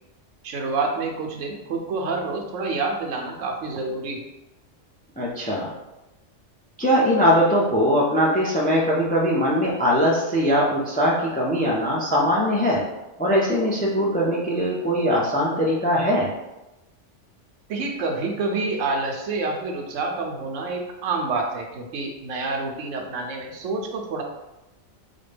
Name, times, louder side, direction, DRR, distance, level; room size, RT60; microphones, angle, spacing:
voice 1, 0.4-4.2 17.7-24.2, right 3 dB, 85° right, 2 dB, 1.0 m, -28 dB
voice 2, 5.2-5.7 6.8-12.8 13.2-16.3, equal, 15° left, -4 dB, 0.3 m, -21 dB
4.1 x 2.2 x 3.3 m, 0.97 s
omnidirectional pair, 1.3 m